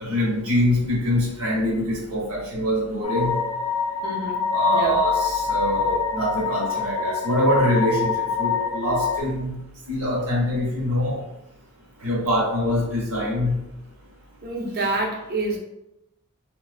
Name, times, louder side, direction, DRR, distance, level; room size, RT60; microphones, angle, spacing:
voice 1, 0.0-3.3 4.5-8.1 8.4-9.5 9.9-11.2 12.0-13.6, equal, 70° right, -4 dB, 0.9 m, -24 dB
sound 1, 3.0-9.2, left 5 dB, 35° left, 0.6 m, -25 dB
voice 2, 4.0-5.0 14.4-15.6, right 2 dB, 45° right, 0 dB, 0.4 m, -28 dB
2.5 x 2.2 x 2.4 m, 0.88 s
head